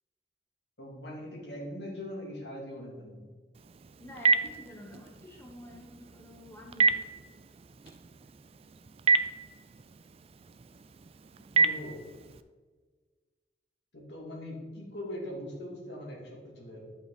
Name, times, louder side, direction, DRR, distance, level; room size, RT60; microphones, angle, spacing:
voice 1, 0.8-3.2 11.4-12.0 13.9-17.0, left 1 dB, 70° left, -2 dB, 2.4 m, -41 dB
Telephone, 3.5-12.4, right 4 dB, 35° right, 0.4 m, -31 dB
voice 2, 4.0-7.2, left 1 dB, 15° left, -1 dB, 1.2 m, -49 dB
11.0 x 5.5 x 4.0 m, 1.5 s
head